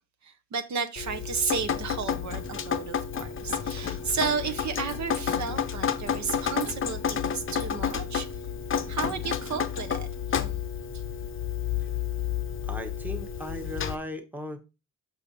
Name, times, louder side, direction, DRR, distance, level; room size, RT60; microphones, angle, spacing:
voice 1, 0.2-8.3 8.9-10.1 10.9-11.0, right 6 dB, 60° right, 0.8 m, -33 dB
Drip, 1.0-14.0, left 8 dB, 40° left, 0.6 m, -31 dB
voice 2, 12.6-14.6, left 1 dB, 5° right, 1.0 m, -37 dB
6.9 x 5.7 x 4.1 m
wide cardioid pair, 165°, 33 cm